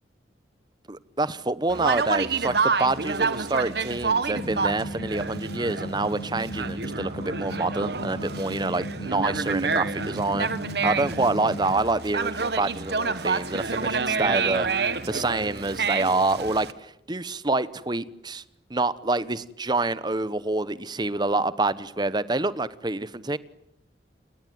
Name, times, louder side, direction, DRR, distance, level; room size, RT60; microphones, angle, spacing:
voice 1, 0.9-10.5 10.8-14.7 15.1-18.4 18.7-23.4, right 2 dB, 25° right, 1.0 m, -27 dB
Conversation, 1.7-16.7, right 4 dB, 65° right, 1.3 m, -28 dB
sound 1, 4.3-11.8, equal, 60° left, 1.3 m, -36 dB
29.5 x 21.5 x 9.4 m
head